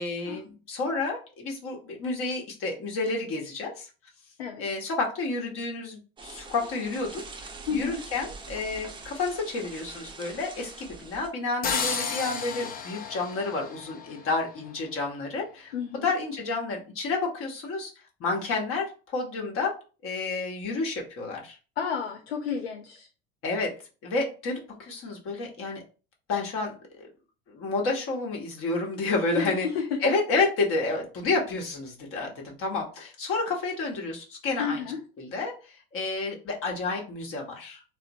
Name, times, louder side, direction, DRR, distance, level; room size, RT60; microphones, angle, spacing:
voice 1, 0.0-3.9 4.6-15.7 16.0-17.9 18.2-19.8 20.0-21.6 23.4-23.7 24.0-25.8 26.3-27.1 27.5-29.7 30.0-34.8 35.2-37.8, left 3 dB, 45° left, 0 dB, 0.9 m, -30 dB
sound 1, 6.2-11.3, right 3 dB, 15° right, 0.5 m, -44 dB
voice 2, 7.7-8.0 15.7-16.1 21.8-23.1 29.4-29.9 34.6-35.0, left 6 dB, 90° left, 1 dB, 0.5 m, -31 dB
sound 2, 11.6-14.5, left 6 dB, 30° left, 0.6 m, -32 dB
2.9 x 2.0 x 2.6 m, 0.35 s
hypercardioid pair, 80°, 30 cm